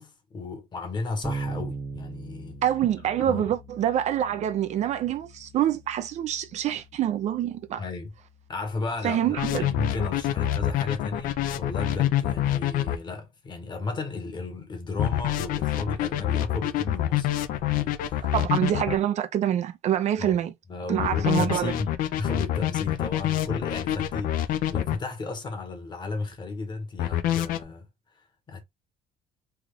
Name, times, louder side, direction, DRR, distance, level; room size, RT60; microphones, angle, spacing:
voice 1, 0.0-2.6 3.2-3.5 7.8-8.1 8.5-18.3 20.2-20.4 20.7-27.9 28.1-28.6, left 3 dB, 30° left, 1.0 m, -34 dB
Bass guitar, 1.2-10.9, right 3 dB, 15° right, 0.9 m, -41 dB
voice 2, 2.6-7.8 9.0-9.7 18.3-20.5 20.9-21.7, right 11 dB, 50° right, 0.4 m, -26 dB
sound 1, 9.4-13.0 15.0-19.0 21.0-25.0 27.0-27.6, left 12 dB, 70° left, 0.5 m, -26 dB
3.4 x 2.4 x 3.5 m
cardioid pair, 140°, 15 cm